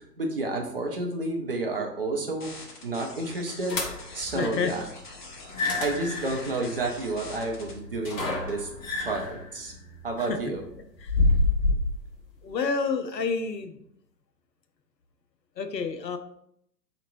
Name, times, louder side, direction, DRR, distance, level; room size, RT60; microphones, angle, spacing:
voice 1, 0.0-2.5 2.8-3.8 4.1-4.9 5.8-8.7 9.0-9.7 10.0-10.6, right 2 dB, 35° right, 2 dB, 0.5 m, -30 dB
sound 1, 2.4-7.7, left 3 dB, 30° left, 0.7 m, -45 dB
sound 2, 3.7-4.2 5.4-12.0, left 2 dB, 55° left, 1.0 m, -28 dB
voice 2, 4.3-4.7 10.3-10.4 11.0-11.1 12.4-13.8 15.6-16.2, left 5 dB, 80° left, 7 dB, 0.7 m, -28 dB
4.3 x 2.9 x 2.6 m, 0.72 s
figure-of-eight pair, 125°, 50 cm